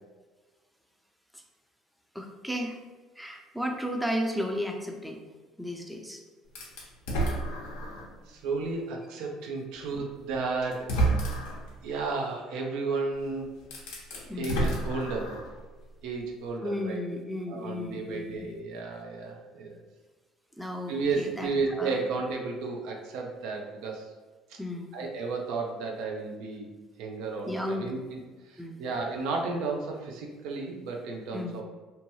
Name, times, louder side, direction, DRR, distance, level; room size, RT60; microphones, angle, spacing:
voice 1, 2.1-2.8 3.2-6.2 14.3-14.5 16.6-18.5 20.6-22.0 24.6-25.0 27.5-27.9 28.6-28.8 31.3-31.6, equal, ahead, 2 dB, 0.5 m, -34 dB
sound 1, 6.5-8.2 8.7-8.8 10.0-10.1 10.7-11.7 13.1-13.2 13.6-15.6, right 2 dB, 80° left, 0.6 m, -30 dB
voice 2, 8.3-10.9 11.8-13.5 14.4-15.3 16.0-17.0 17.5-19.8 20.9-24.1 24.5-24.6 24.9-26.7 27.0-28.2 28.5-31.6, right 4 dB, 75° right, 1 dB, 0.5 m, -33 dB
2.8 x 2.2 x 3.0 m, 1.3 s
supercardioid pair, 75°, 0 cm